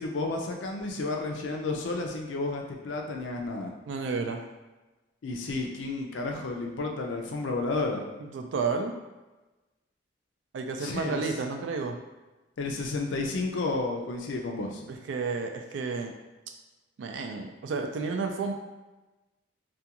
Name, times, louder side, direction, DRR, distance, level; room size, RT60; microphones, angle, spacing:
voice 1, 0.0-3.7 5.2-8.0 10.8-11.3 12.6-14.8, left 3 dB, 85° left, 2 dB, 0.4 m, -31 dB
voice 2, 3.9-4.4 8.2-9.0 10.5-12.0 14.9-16.1 17.0-18.5, right 4 dB, 80° right, 5 dB, 0.3 m, -31 dB
2.4 x 2.3 x 2.8 m, 1.1 s
head